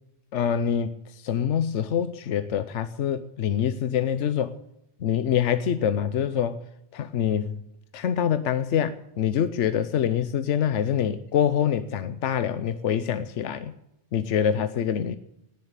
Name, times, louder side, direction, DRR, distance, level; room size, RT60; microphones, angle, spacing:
voice 1, 0.3-4.5 5.0-6.6 6.9-7.6 7.9-13.7 14.1-15.2, left 9 dB, 85° left, 12 dB, 1.1 m, -25 dB
18.5 x 7.5 x 8.8 m, 0.84 s
omnidirectional pair, 1.2 m